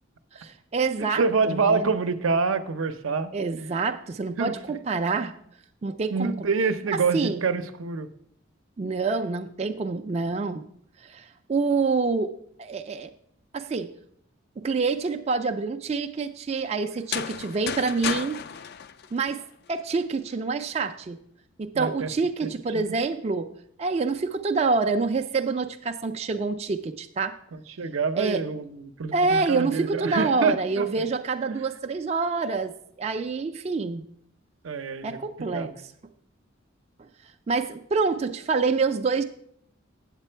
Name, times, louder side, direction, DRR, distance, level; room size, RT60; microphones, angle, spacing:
voice 1, 0.3-1.9 3.3-5.3 5.8-6.4 7.1-7.4 8.8-10.6 11.0-12.3 12.6-13.1 13.5-13.9 14.6-18.4 19.1-19.4 19.7-21.2 21.6-23.5 23.8-27.4 28.1-28.4 29.1-34.0 35.0-35.7 37.5-39.2, right 4 dB, 30° right, 6 dB, 0.3 m, -27 dB
voice 2, 1.1-3.3 4.4-4.8 6.1-8.1 21.7-22.1 22.4-22.5 27.5-30.8 34.6-35.2 35.5-35.7, right 4 dB, 85° right, 9 dB, 0.6 m, -26 dB
sound 1, 16.9-19.8, left 8 dB, 50° left, 0.3 m, -33 dB
8.2 x 7.5 x 4.4 m, 0.70 s
head